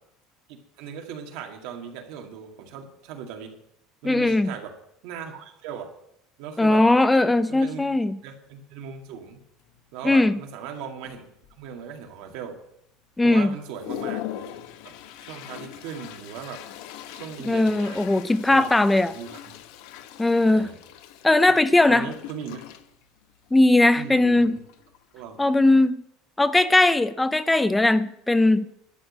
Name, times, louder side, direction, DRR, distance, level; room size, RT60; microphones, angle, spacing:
voice 1, 0.5-3.6 4.0-4.7 5.0-5.9 6.4-6.8 7.5-7.9 8.2-9.4 9.9-11.3 11.6-12.6 13.2-14.4 14.8-14.9 15.2-16.6 17.1-18.1 18.5-18.7 19.0-19.6 20.4-20.8 21.4-21.6 21.9-22.6 23.9-24.6 25.1-25.4, right 7 dB, 70° right, 3 dB, 2.2 m, -38 dB
voice 2, 4.0-4.5 6.6-8.2 10.0-10.4 13.2-13.5 17.4-19.1 20.2-20.7 21.2-22.1 23.5-24.6 25.4-26.0 26.4-28.7, left 2 dB, 5° left, 13 dB, 0.5 m, -19 dB
Toilet flush, 8.5-8.6 9.1-9.3 9.6-10.2 10.7-10.8 11.0-11.8 12.3-12.4 12.9-13.0 13.4-25.4, left 11 dB, 70° left, 1.0 m, -41 dB
12.0 x 6.4 x 8.8 m, 0.75 s
cardioid pair, 165°, 0 cm